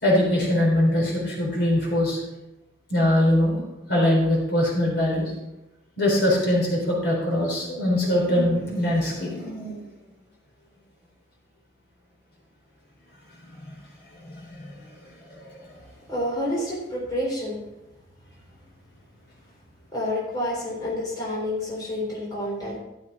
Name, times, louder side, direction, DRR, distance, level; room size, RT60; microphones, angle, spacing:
voice 1, 0.0-2.2 2.9-3.6 3.9-5.3 6.0-9.8 13.7-13.8 14.2-14.9 15.3-15.5, left 1 dB, 70° left, -2 dB, 3.9 m, -22 dB
voice 2, 16.1-17.6 19.9-22.8, left 1 dB, 20° left, -5 dB, 3.6 m, -28 dB
12.5 x 7.4 x 4.2 m, 0.94 s
head